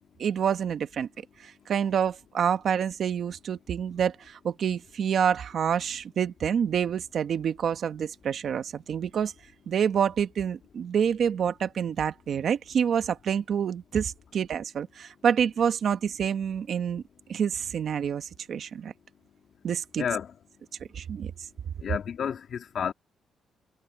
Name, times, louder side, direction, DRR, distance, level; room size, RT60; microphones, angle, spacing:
voice 1, 0.2-1.1 1.4-9.3 9.7-17.0 17.3-18.9 19.6-20.0 20.9-21.3, right 8 dB, 45° right, 1.1 m, -27 dB
voice 2, 20.0-20.4 21.8-22.9, left 7 dB, 45° left, 2.4 m, -31 dB
cardioid pair, 160°, 0 cm